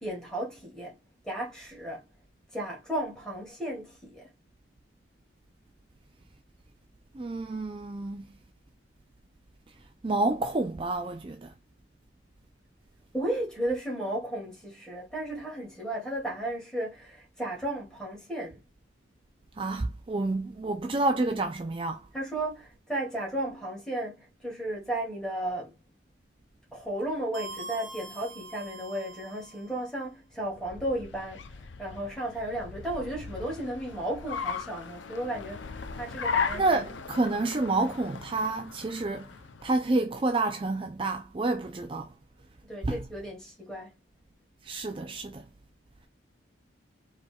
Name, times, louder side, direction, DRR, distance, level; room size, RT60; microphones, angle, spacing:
voice 1, 0.0-1.0 1.2-2.0 2.5-4.3 13.1-18.6 22.1-25.8 26.7-36.9 42.7-43.9, right 1 dB, 5° left, 2.3 m, -34 dB
voice 2, 7.1-8.3 10.0-11.5 19.6-22.0 36.5-39.3 39.6-42.1 42.8-43.1 44.6-45.4, right 2 dB, 30° right, 0.4 m, -29 dB
sound 1, 27.3-29.7, right 2 dB, 80° right, 0.9 m, -43 dB
Car, 30.3-39.9, left 5 dB, 75° left, 0.5 m, -37 dB
4.9 x 4.2 x 2.3 m
head